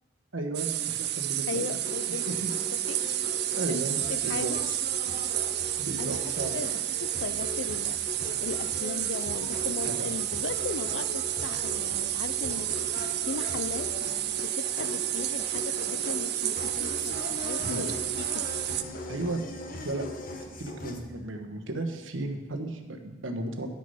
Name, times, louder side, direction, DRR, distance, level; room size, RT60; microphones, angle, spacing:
voice 1, 0.3-1.7 2.1-2.5 3.6-4.5 5.8-6.6 9.8-10.1 17.6-17.9 19.1-19.4 19.8-20.1 20.6-23.7, right 2 dB, 85° right, 4 dB, 1.2 m, -34 dB
sound 1, 0.5-18.8, right 13 dB, 55° right, 0.5 m, -31 dB
voice 2, 1.5-2.4 2.9-3.0 3.7-3.8 4.1-4.6 6.0-8.0 8.4-12.7 13.2-13.9 14.4-17.9 18.2-18.4, left 4 dB, 70° left, 13 dB, 0.5 m, -37 dB
sound 2, 1.8-21.0, left 2 dB, 45° left, 1.0 m, -40 dB
9.9 x 6.3 x 5.6 m, 1.1 s
head